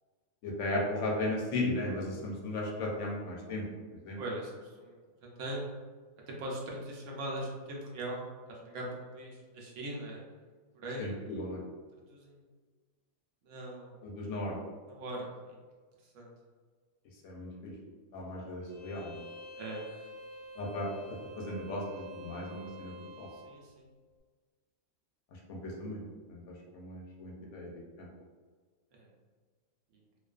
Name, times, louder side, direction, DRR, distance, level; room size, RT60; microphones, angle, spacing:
voice 1, 0.4-3.6 4.0-4.2 11.0-11.6 14.0-14.6 17.2-17.7 18.1-19.2 20.6-20.9 21.4-23.3 25.5-26.0 26.3-26.4 26.7-27.7 28.0-28.1, left 2 dB, 70° left, -2 dB, 0.8 m, -36 dB
voice 2, 4.2-5.7 6.3-10.2 10.8-11.5 12.1-12.4 13.5-13.9 14.9-15.6 16.1-16.3 19.6-19.8 23.3-23.9 28.9-29.1, right 1 dB, 70° right, -2 dB, 0.9 m, -41 dB
Bowed string instrument, 18.7-23.5, left 1 dB, 45° right, 0.9 m, -48 dB
2.3 x 2.3 x 2.3 m, 1.5 s
omnidirectional pair, 1.4 m